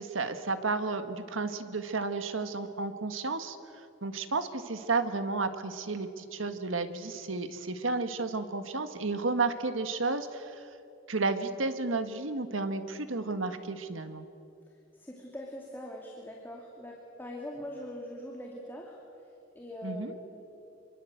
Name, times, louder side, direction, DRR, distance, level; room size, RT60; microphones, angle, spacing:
voice 1, 0.0-3.6 4.0-10.6 11.1-14.3 19.8-20.2, right 3 dB, 85° right, 9 dB, 1.6 m, -32 dB
voice 2, 14.7-20.4, equal, 10° left, -1 dB, 2.6 m, -43 dB
26.0 x 23.5 x 8.0 m, 2.8 s
head